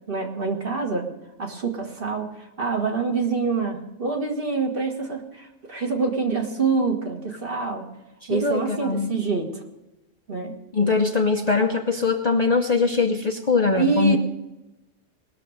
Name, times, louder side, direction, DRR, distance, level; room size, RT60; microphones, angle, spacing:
voice 1, 0.1-1.1 1.4-2.3 2.6-7.8 8.3-9.5 10.3-10.5 13.8-14.2, right 4 dB, 45° right, 2 dB, 1.8 m, -26 dB
voice 2, 8.2-9.2 10.7-14.2, left 4 dB, 40° left, 4 dB, 0.7 m, -22 dB
19.5 x 6.8 x 6.3 m, 0.98 s
omnidirectional pair, 1.3 m